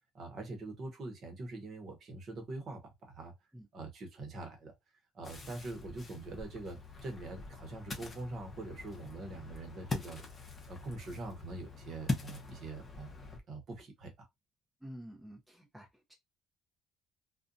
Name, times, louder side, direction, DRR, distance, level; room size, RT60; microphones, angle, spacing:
voice 1, 0.1-3.3 3.7-4.7 5.1-10.2 10.7-13.2 13.5-14.3, right 2 dB, 45° right, 0.9 m, -44 dB
Ocean, 5.2-13.4, left 3 dB, 25° left, 0.7 m, -42 dB
voice 2, 14.8-16.1, equal, 5° right, 0.7 m, -49 dB
2.5 x 2.2 x 2.6 m
cardioid pair, 135°, 0 cm